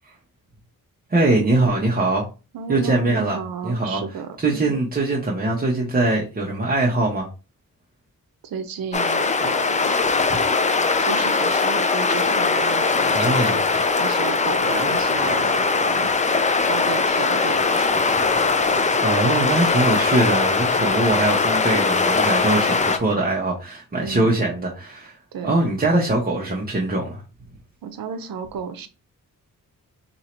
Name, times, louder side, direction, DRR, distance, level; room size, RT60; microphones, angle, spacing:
voice 1, 1.1-2.3 2.7-3.4 3.6-4.0 4.4-7.3 10.3-10.4 13.1-13.6 19.0-25.2 25.4-27.2, right 2 dB, 25° right, 0.8 m, -22 dB
voice 2, 2.5-4.8 8.4-10.0 11.0-18.3 18.7-18.9 23.9-24.3 25.3-25.7 27.8-28.9, right 6 dB, 85° right, 0.6 m, -33 dB
sound 1, 8.9-23.0, left 4 dB, 20° left, 0.4 m, -20 dB
3.0 x 2.8 x 4.3 m
wide cardioid pair, 110°, 34 cm